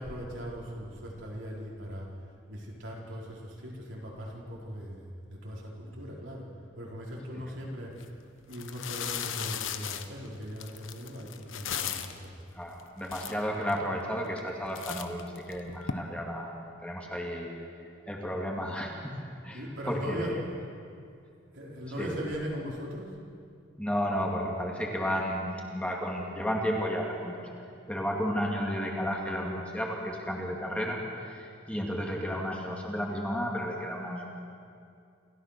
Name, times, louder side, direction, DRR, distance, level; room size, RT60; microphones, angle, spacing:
voice 1, 0.0-2.1 2.5-6.5 6.8-8.0 8.5-12.3 19.5-20.4 21.5-23.1, equal, 70° right, -3 dB, 4.5 m, -39 dB
sound 1, 7.9-8.0 8.5-12.2 12.8-12.9 13.1-13.8 14.3-14.5 14.7-15.9, left 8 dB, 75° left, 1.0 m, -36 dB
voice 2, 12.5-16.5 16.8-17.5 18.1-19.1 19.4-20.4 21.8-22.1 23.8-27.5 27.9-31.0 31.3-34.3, equal, 5° left, -1 dB, 2.3 m, -32 dB
28.0 x 14.0 x 6.7 m, 2.4 s
head